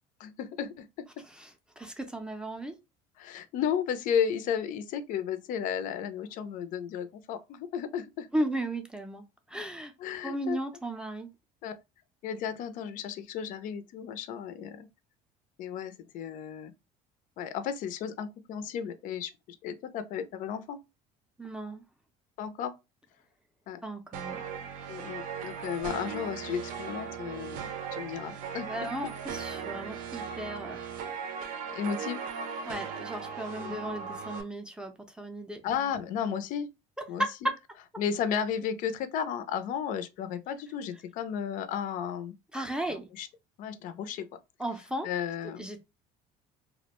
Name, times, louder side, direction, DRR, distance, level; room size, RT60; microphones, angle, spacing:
voice 1, 0.2-1.1 3.2-8.3 10.0-10.6 11.6-11.7 12.2-14.9 15.6-16.7 17.4-19.3 19.6-20.8 22.4-22.7 23.7-23.8 24.9-29.1 31.7-32.2 33.6-33.8 35.6-36.7 37.1-37.5 38.0-42.3 42.9-43.3 43.6-44.3 45.0-45.7, left 8 dB, 60° left, 0.4 m, -34 dB
voice 2, 1.2-2.8 8.3-9.9 10.2-11.3 21.4-21.8 23.8-24.4 28.7-30.8 32.7-35.6 37.0-37.6 42.5-43.1 44.6-45.1 45.6-45.8, right 1 dB, 5° right, 0.4 m, -35 dB
sound 1, 24.1-34.4, right 6 dB, 65° right, 0.6 m, -38 dB
2.3 x 2.1 x 2.9 m
cardioid pair, 120°, 15 cm